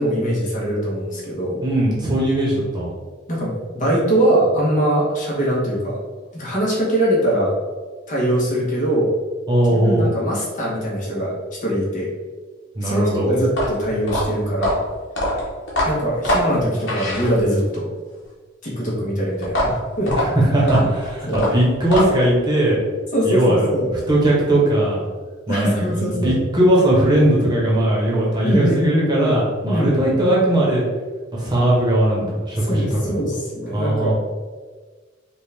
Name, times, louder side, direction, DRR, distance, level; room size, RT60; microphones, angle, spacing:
voice 1, 0.0-1.6 3.3-6.0 6.3-7.5 8.1-9.1 9.7-11.3 11.6-12.1 12.8-14.8 15.8-17.9 18.6-20.1 21.3-21.5 23.1-23.9 25.5-26.4 28.4-29.4 29.7-30.2 32.6-34.1, right 1 dB, 40° left, -4 dB, 1.2 m, -22 dB
voice 2, 1.6-2.9 9.5-10.1 12.8-13.3 20.2-22.8 23.2-25.0 25.5-30.8 31.3-33.1 33.7-34.1, right 1 dB, 20° right, -5 dB, 1.1 m, -19 dB
sound 1, 13.4-17.7 19.4-22.4, equal, 65° left, 1.3 m, -23 dB
5.2 x 2.5 x 3.4 m, 1.4 s
head